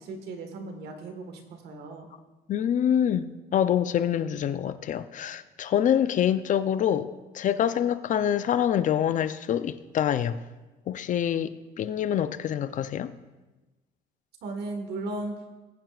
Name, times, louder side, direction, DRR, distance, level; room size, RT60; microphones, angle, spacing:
voice 1, 0.0-2.1 14.4-15.4, right 2 dB, 75° right, 1.6 m, -36 dB
voice 2, 2.5-10.4 10.9-13.1, left 9 dB, 50° left, 0.6 m, -26 dB
20.5 x 9.0 x 2.5 m
cardioid pair, 110°, 17 cm